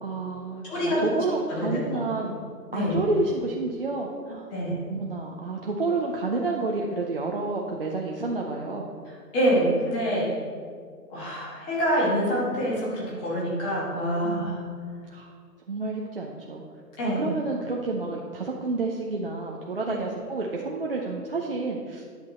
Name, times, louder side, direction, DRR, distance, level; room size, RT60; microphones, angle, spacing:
voice 1, 0.0-2.4 2.7-4.5 4.9-8.9 14.2-14.8 15.1-15.3 15.7-16.6 17.0-22.0, right 3 dB, 40° right, -2 dB, 0.5 m, -30 dB
voice 2, 0.6-1.0 1.5-2.0 2.7-3.0 4.5-4.8 9.3-10.3 11.1-14.5 17.0-17.2 19.9-20.0, equal, 10° left, -6 dB, 1.3 m, -26 dB
10.0 x 6.0 x 4.2 m, 2.1 s
hypercardioid pair, 155°, 48 cm